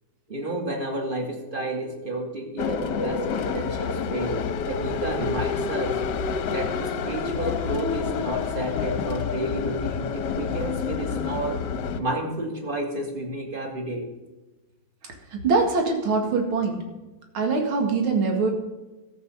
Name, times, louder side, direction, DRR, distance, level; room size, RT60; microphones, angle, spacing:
voice 1, 0.3-5.9 6.5-11.6 12.0-14.1, right 1 dB, 25° right, 2 dB, 2.4 m, -31 dB
sound 1, 2.6-12.0, left 6 dB, 65° left, 1.4 m, -28 dB
voice 2, 15.0-16.8 17.3-18.5, right 4 dB, 70° right, 2 dB, 2.8 m, -23 dB
13.5 x 8.1 x 6.7 m, 1.1 s
omnidirectional pair, 2.4 m